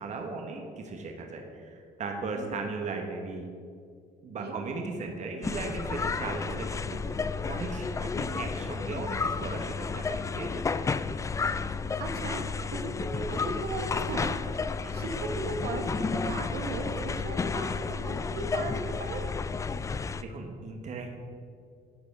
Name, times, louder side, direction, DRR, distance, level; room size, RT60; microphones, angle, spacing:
voice 1, 0.0-3.5 4.2-7.0 7.5-8.1 8.4-10.8 14.8-15.1 20.2-21.1, right 3 dB, 45° right, 3 dB, 1.3 m, -37 dB
sound 1, 5.4-20.2, left 4 dB, 20° left, 0.3 m, -32 dB
voice 2, 12.0-14.4 14.9-19.2, right 3 dB, 75° right, 3 dB, 1.4 m, -37 dB
11.5 x 5.2 x 6.6 m, 2.2 s
cardioid pair, 110°, 17 cm